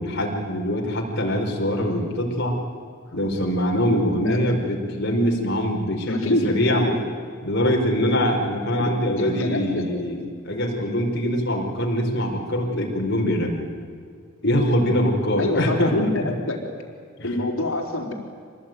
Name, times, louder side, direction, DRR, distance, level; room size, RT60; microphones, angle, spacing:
voice 1, 0.0-2.6 3.1-6.8 7.4-13.6 14.4-16.1 17.2-17.3, equal, 55° left, 0 dB, 5.1 m, -23 dB
voice 2, 4.1-4.4 6.0-7.0 8.6-8.9 9.2-9.9 15.4-16.6 17.2-18.1, left 1 dB, 70° left, 1 dB, 4.5 m, -26 dB
26.0 x 19.5 x 9.5 m, 2.2 s
head